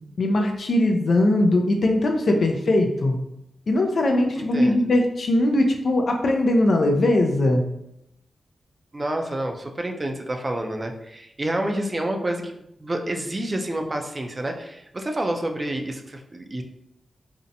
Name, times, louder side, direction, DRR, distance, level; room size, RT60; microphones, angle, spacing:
voice 1, 0.2-3.2 3.7-7.6, left 1 dB, 65° left, 3 dB, 0.4 m, -20 dB
voice 2, 4.3-4.8 8.9-16.6, right 1 dB, 30° right, 3 dB, 0.4 m, -29 dB
2.6 x 2.0 x 2.6 m, 0.82 s
cardioid pair, 55°, 0 cm